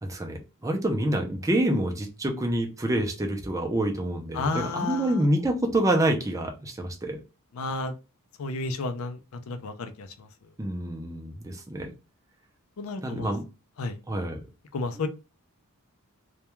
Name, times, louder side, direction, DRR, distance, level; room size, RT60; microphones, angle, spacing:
voice 1, 0.0-7.2 10.6-11.9 13.0-13.4 14.1-14.4, right 1 dB, 15° right, 2 dB, 0.4 m, -27 dB
voice 2, 4.3-5.3 7.5-7.9 8.4-10.3 12.8-13.3 13.8-14.0 14.7-15.1, left 3 dB, 65° left, 8 dB, 0.4 m, -32 dB
2.2 x 2.2 x 2.9 m, 0.30 s
head